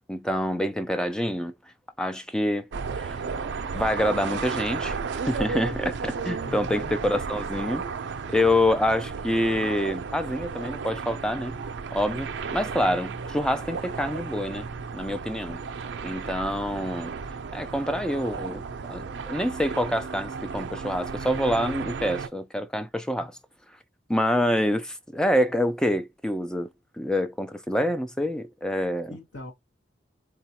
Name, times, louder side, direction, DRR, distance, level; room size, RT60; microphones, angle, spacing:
voice 1, 0.1-1.5 2.0-2.7 3.0-3.2 3.7-5.0 5.3-7.8 8.3-11.6 11.9-14.7 14.9-15.6 16.0-17.1 17.5-18.6 18.9-23.3 24.1-26.7 27.0-29.2, left 1 dB, 5° left, 0.3 m, -26 dB
sound 1, 2.7-22.3, right 5 dB, 70° right, 0.4 m, -34 dB
voice 2, 6.4-7.1 29.1-29.5, left 1 dB, 85° left, 1.1 m, -40 dB
3.8 x 2.3 x 2.8 m
head